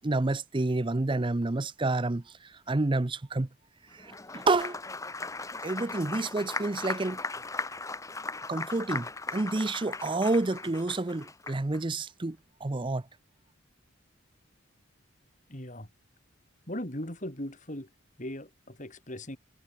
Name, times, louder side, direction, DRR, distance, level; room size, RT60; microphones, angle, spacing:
voice 1, 0.0-3.5 3.9-4.8 5.6-7.2 8.5-13.0, right 2 dB, 25° right, 0.6 m, -29 dB
Applause, 4.0-11.8, left 3 dB, 15° left, 1.2 m, -38 dB
voice 2, 15.5-15.9 16.7-17.9 18.2-19.4, left 1 dB, 35° left, 4.2 m, -38 dB
head